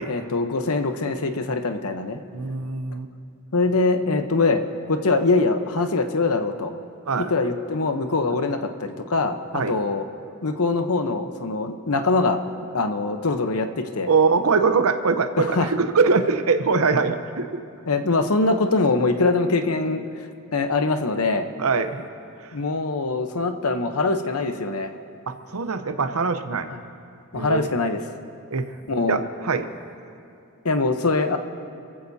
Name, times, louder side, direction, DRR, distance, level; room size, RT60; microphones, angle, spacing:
voice 1, 0.1-2.2 3.5-4.6 4.9-6.7 7.2-10.1 10.4-12.4 12.7-14.1 15.4-15.7 17.9-20.0 20.5-21.5 22.5-24.9 26.7-26.8 27.3-28.0 28.9-29.2 30.6-31.4, left 3 dB, 85° left, 7 dB, 0.9 m, -23 dB
voice 2, 2.3-3.1 7.1-7.3 9.5-9.8 14.1-17.6 21.6-22.0 22.4-22.6 25.3-26.7 27.3-27.7 28.5-28.7 29.1-29.7, right 4 dB, 75° right, 8 dB, 0.8 m, -22 dB
28.0 x 15.0 x 2.8 m, 2.5 s
head